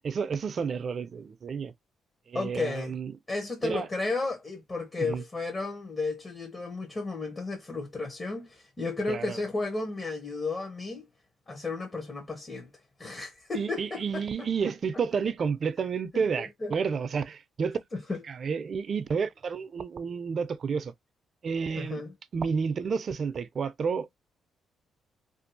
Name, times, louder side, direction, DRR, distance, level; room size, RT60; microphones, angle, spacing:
voice 1, 0.0-1.7 2.3-3.1 3.6-3.9 5.0-5.2 9.1-9.4 13.5-17.8 18.3-20.9 21.4-22.0 22.3-24.1, right 6 dB, 50° right, 0.4 m, -30 dB
voice 2, 2.3-3.0 3.3-11.1 11.5-12.7 13.0-14.5 16.1-16.7 17.9-18.2 21.7-22.1, left 3 dB, 30° left, 0.8 m, -33 dB
2.6 x 2.3 x 2.6 m
cardioid pair, 90°, 0 cm